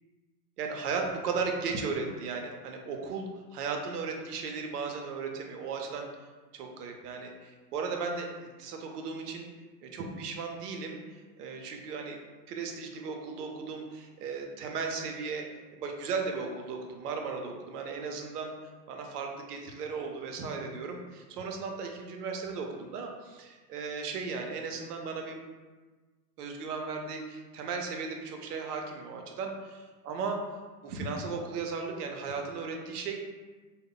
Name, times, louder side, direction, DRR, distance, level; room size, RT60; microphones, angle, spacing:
voice 1, 0.6-6.1 6.5-8.3 8.6-9.5 9.8-12.2 12.5-15.5 15.7-18.5 18.9-25.4 26.4-30.5 30.8-33.2, right 4 dB, 70° right, 2 dB, 0.6 m, -36 dB
2.2 x 2.1 x 3.7 m, 1.3 s
supercardioid pair, 145°, 48 cm